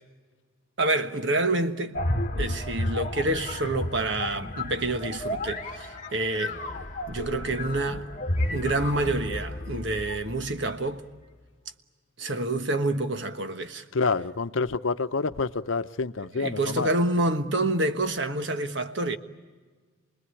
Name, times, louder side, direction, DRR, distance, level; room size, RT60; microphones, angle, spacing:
voice 1, 0.8-2.0 2.3-6.6 7.1-8.0 8.5-11.0 12.2-13.8 16.2-19.2, right 2 dB, 60° right, 1.4 m, -27 dB
sound 1, 1.9-10.7, left 1 dB, 40° left, 1.4 m, -32 dB
voice 2, 13.9-16.9, left 4 dB, 75° left, 0.7 m, -27 dB
28.5 x 20.5 x 9.8 m
head